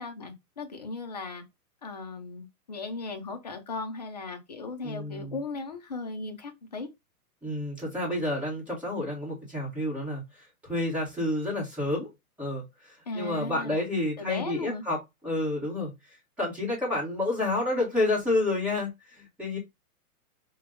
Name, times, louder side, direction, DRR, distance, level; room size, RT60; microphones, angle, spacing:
voice 1, 0.0-1.4 1.8-6.9 13.1-14.8, left 3 dB, 30° left, 0.4 m, -37 dB
voice 2, 4.8-5.4 7.4-12.1 12.4-15.0 15.2-19.6, left 2 dB, 5° right, 1.1 m, -30 dB
5.2 x 2.2 x 3.7 m
hypercardioid pair, 170°, 46 cm